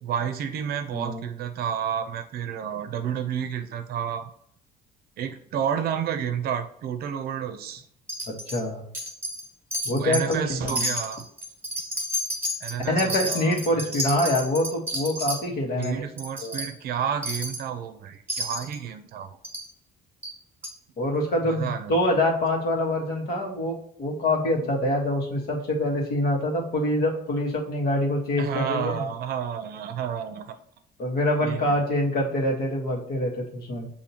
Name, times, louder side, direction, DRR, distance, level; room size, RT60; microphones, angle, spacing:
voice 1, 0.0-4.3 5.2-7.8 9.9-11.2 12.6-13.8 15.8-19.4 21.4-22.2 28.4-30.6 31.4-31.7, right 8 dB, 65° right, 8 dB, 0.6 m, -30 dB
voice 2, 0.9-1.2 8.3-8.8 9.8-10.9 12.9-16.0 16.4-16.7 21.0-29.1 31.0-33.9, left 1 dB, 65° left, -1 dB, 1.4 m, -25 dB
Wind chime, 8.1-8.6 8.9-9.5 9.7-10.4 10.7-15.4 15.8-15.9 16.2-16.7 17.2-17.6 18.3-18.8 19.4-19.7 20.2-20.3 20.6-20.7, equal, 15° right, 1.3 m, -30 dB
6.7 x 2.8 x 2.8 m, 0.69 s
cardioid pair, 110°, 17 cm